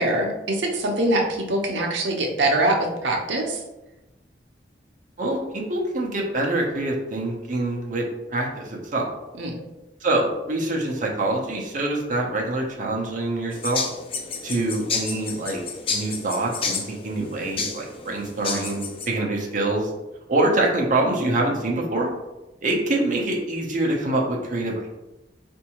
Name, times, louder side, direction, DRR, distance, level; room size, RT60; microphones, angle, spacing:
voice 1, 0.0-3.6 9.4-9.6, right 1 dB, 80° right, 0 dB, 0.8 m, -23 dB
voice 2, 5.2-8.0 8.3-9.1 10.0-13.8 14.4-15.6 15.9-19.9 20.3-22.1 22.6-25.0, right 2 dB, 45° right, -1 dB, 0.7 m, -25 dB
sound 1, 13.5-19.1, left 4 dB, 30° left, 0.4 m, -31 dB
4.5 x 2.6 x 3.0 m, 1.0 s
head